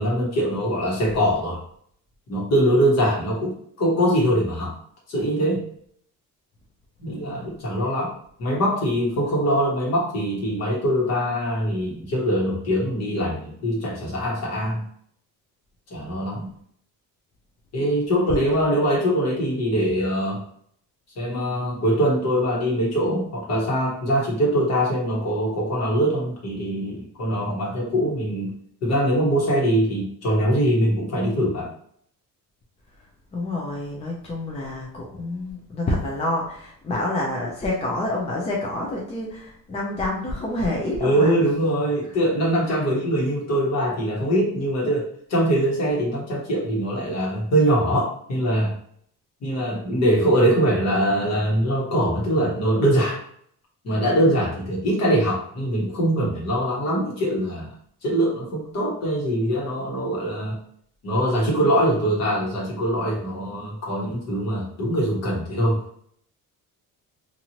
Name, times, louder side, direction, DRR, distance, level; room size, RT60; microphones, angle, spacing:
voice 1, 0.0-1.6 2.3-4.8 5.1-5.6 7.0-14.8 15.9-16.5 17.7-20.4 21.2-28.5 28.8-31.7 41.0-48.7 49.4-53.2 53.8-57.7 58.0-60.6 61.0-65.8, equal, 50° left, -3 dB, 1.2 m, -23 dB
voice 2, 7.1-7.5 9.2-9.3 18.3-18.4 33.3-41.3, left 1 dB, 20° left, -2 dB, 0.4 m, -28 dB
2.8 x 2.6 x 2.8 m, 0.64 s
cardioid pair, 160°, 33 cm